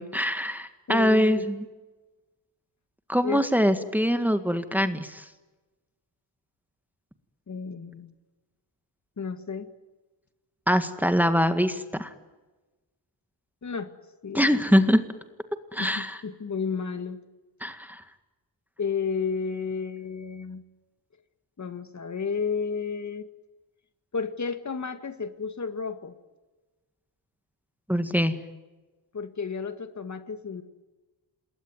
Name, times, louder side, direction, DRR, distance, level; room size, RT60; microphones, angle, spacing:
voice 1, 0.0-1.7 3.1-5.2 10.7-12.1 14.3-15.0 15.7-16.2 17.6-18.0 27.9-28.4, equal, 5° right, 9 dB, 1.8 m, -23 dB
voice 2, 0.9-1.5 3.2-3.4 7.5-8.1 9.2-9.7 13.6-13.9 14.2-14.6 15.8-17.2 18.8-20.6 21.6-23.3 24.1-26.1 29.1-30.6, left 5 dB, 40° left, 10 dB, 2.0 m, -32 dB
28.0 x 21.0 x 9.5 m, 1.2 s
wide cardioid pair, 120°, 44 cm